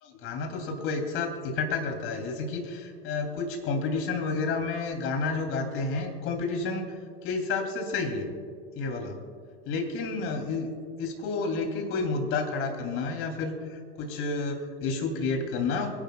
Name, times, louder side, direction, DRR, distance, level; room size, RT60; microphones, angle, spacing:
voice 1, 0.0-8.3 8.7-9.2 9.7-10.7 11.0-15.9, left 4 dB, 45° left, 3 dB, 3.0 m, -30 dB
26.0 x 11.5 x 2.3 m, 2.2 s
figure-of-eight pair, 80°, 30 cm